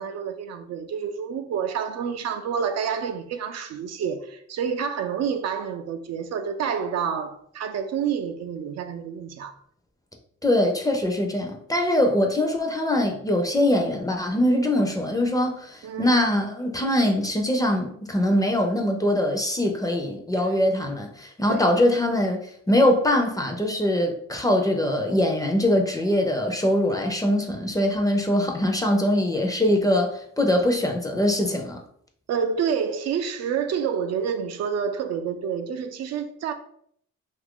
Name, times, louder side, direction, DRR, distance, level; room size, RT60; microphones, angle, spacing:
voice 1, 0.0-9.6 15.8-16.2 20.4-20.5 21.5-21.8 32.3-36.5, right 7 dB, 60° right, 0.4 m, -28 dB
voice 2, 10.4-22.4 22.7-31.8, left 1 dB, 10° left, 0.5 m, -22 dB
2.8 x 2.5 x 3.6 m
cardioid pair, 90°, 30 cm